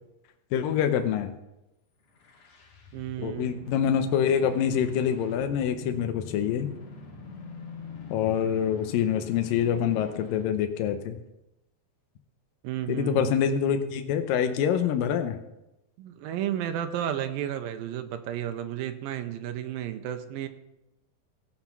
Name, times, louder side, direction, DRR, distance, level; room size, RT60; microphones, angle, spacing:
voice 1, 0.5-1.3 3.2-6.7 8.1-11.2 12.9-15.4, left 8 dB, 75° left, 7 dB, 2.4 m, -26 dB
sound 1, 2.1-10.7, left 4 dB, 50° left, 2.8 m, -44 dB
voice 2, 2.9-3.6 12.6-13.4 16.0-20.5, right 11 dB, 85° right, 9 dB, 2.4 m, -32 dB
17.0 x 5.9 x 5.9 m, 0.92 s
omnidirectional pair, 4.1 m